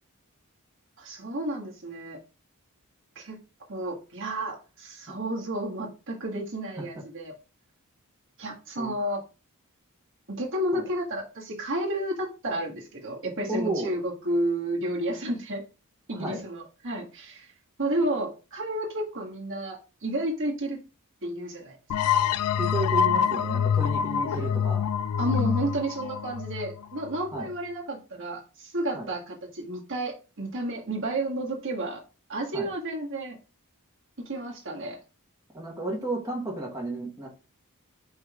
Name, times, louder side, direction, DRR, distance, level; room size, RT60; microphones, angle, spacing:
voice 1, 1.0-2.2 3.1-3.4 3.7-7.3 8.4-9.2 10.4-15.6 16.1-17.5 17.8-20.8 21.2-21.8 22.0-22.1 24.3-24.5 25.2-32.0 32.3-33.4 34.2-35.0, right 1 dB, 60° right, -1 dB, 1.8 m, -31 dB
voice 2, 13.5-13.9 16.1-16.4 22.6-24.8 27.3-27.5 28.9-29.1 32.5-32.7 35.5-37.3, right 2 dB, 15° right, -2 dB, 1.5 m, -32 dB
sound 1, 21.9-27.4, left 8 dB, 80° left, 0.4 m, -26 dB
5.3 x 3.8 x 4.7 m, 0.33 s
head